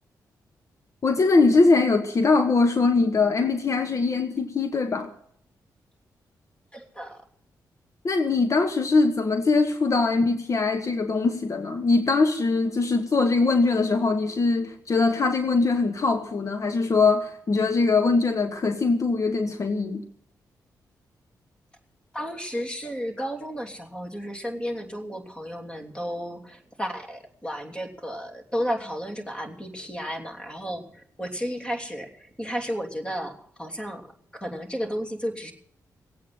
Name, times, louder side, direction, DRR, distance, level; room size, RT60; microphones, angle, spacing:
voice 1, 1.0-5.1 8.0-20.0, left 3 dB, 45° left, 7 dB, 1.3 m, -22 dB
voice 2, 6.7-7.2 22.1-34.1 34.4-35.5, equal, 15° left, 3 dB, 3.0 m, -33 dB
18.5 x 8.6 x 7.7 m, 0.66 s
cardioid pair, 70°, 7 cm